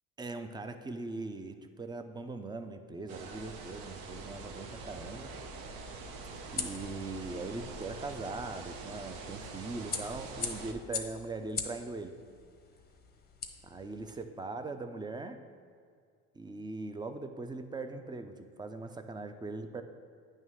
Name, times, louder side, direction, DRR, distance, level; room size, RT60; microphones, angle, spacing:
voice 1, 0.2-5.3 6.1-6.2 6.5-12.1 13.6-15.4 16.3-19.8, right 3 dB, 10° right, 8 dB, 0.4 m, -40 dB
sound 1, 3.1-10.7, right 4 dB, 75° right, 0.9 m, -45 dB
sound 2, 4.3-14.2, left 5 dB, 25° left, 0.8 m, -44 dB
9.1 x 3.2 x 6.2 m, 2.1 s
supercardioid pair, 95°, 36 cm